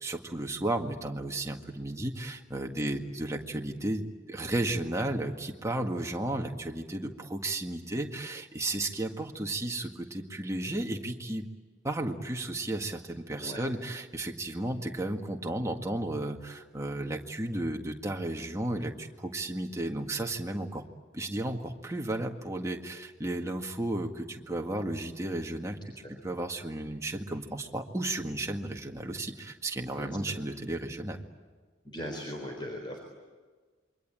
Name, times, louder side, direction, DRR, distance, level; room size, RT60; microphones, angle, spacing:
voice 1, 0.0-11.5 11.8-20.8 21.1-25.9 26.2-31.2, right 1 dB, 15° right, 2 dB, 1.8 m, -33 dB
voice 2, 13.4-13.7 29.9-30.3 31.8-33.0, equal, 25° left, 1 dB, 4.0 m, -40 dB
28.0 x 23.5 x 8.9 m, 1.4 s
head